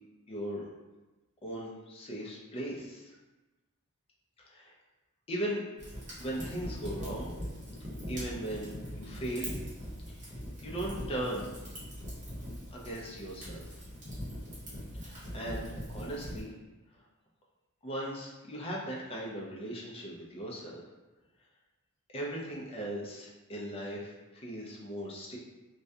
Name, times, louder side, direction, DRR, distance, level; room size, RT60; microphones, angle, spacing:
voice 1, 0.3-0.7 1.4-3.1 4.4-4.7 5.3-5.6 6.2-7.3 8.1-9.6 10.6-11.5 12.7-13.8 15.0-16.5 17.8-20.8 22.1-25.4, right 1 dB, 25° left, -3 dB, 0.5 m, -38 dB
Fire, 5.8-16.4, equal, 35° right, 0.8 m, -41 dB
2.4 x 2.1 x 2.6 m, 1.1 s
head